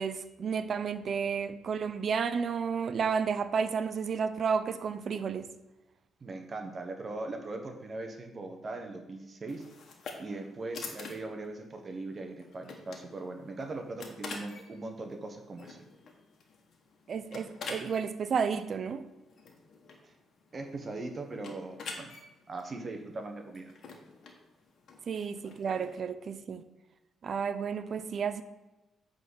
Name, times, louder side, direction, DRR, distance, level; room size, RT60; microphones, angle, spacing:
voice 1, 0.0-5.5 17.1-19.0 25.1-26.6 27.2-28.4, right 6 dB, 50° right, 0.7 m, -32 dB
voice 2, 6.2-9.6 10.2-15.8 20.0-20.1 20.5-22.1 22.5-23.7, right 2 dB, 35° right, 1.1 m, -40 dB
sound 1, 9.5-26.0, left 4 dB, 60° left, 1.6 m, -47 dB
8.9 x 4.0 x 6.3 m
cardioid pair, 90°, 0 cm